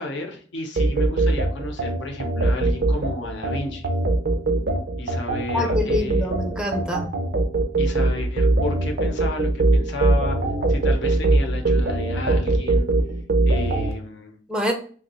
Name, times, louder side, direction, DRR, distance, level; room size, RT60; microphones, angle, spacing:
voice 1, 0.0-3.9 5.0-6.3 7.8-10.4 10.7-12.9 13.4-14.4, left 2 dB, 70° left, 3 dB, 0.7 m, -32 dB
sound 1, 0.8-13.9, right 2 dB, 55° right, 0.5 m, -21 dB
voice 2, 5.5-7.1 14.5-14.7, left 1 dB, 5° right, 3 dB, 0.5 m, -25 dB
2.6 x 2.3 x 4.1 m, 0.44 s
head